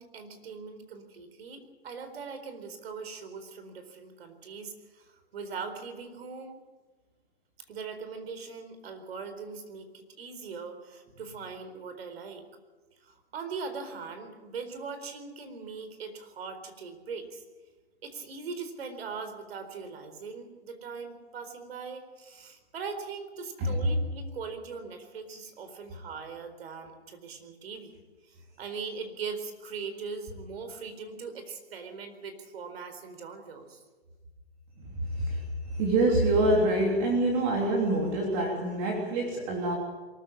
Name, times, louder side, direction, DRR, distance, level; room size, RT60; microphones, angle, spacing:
voice 1, 0.0-6.6 7.7-12.4 13.0-17.4 18.0-28.0 28.3-33.8, right 5 dB, 65° right, 8 dB, 4.4 m, -40 dB
voice 2, 34.8-39.7, right 1 dB, 30° right, 0 dB, 3.3 m, -26 dB
23.5 x 14.5 x 8.8 m, 1.3 s
hypercardioid pair, 145°, 32 cm